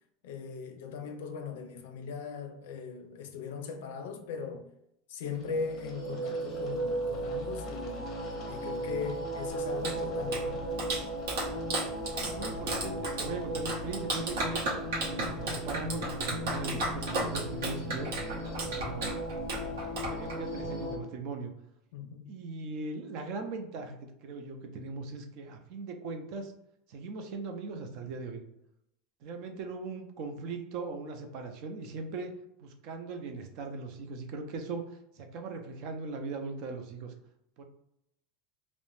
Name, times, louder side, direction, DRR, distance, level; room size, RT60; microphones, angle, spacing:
voice 1, 0.2-4.6 5.1-8.1 8.5-10.8 21.9-22.3, left 5 dB, 80° left, 0.4 m, -39 dB
sound 1, 5.3-21.0, right 1 dB, 35° left, 0.6 m, -36 dB
Clapping, 9.5-20.7, right 2 dB, 80° right, 0.8 m, -35 dB
voice 2, 12.2-14.6 15.0-19.1 20.1-21.5 22.3-26.5 26.9-28.4 29.2-32.3 32.6-34.8 35.1-37.1 37.6-37.7, right 4 dB, 50° right, 0.4 m, -39 dB
2.6 x 2.0 x 3.0 m
supercardioid pair, 160°, 0 cm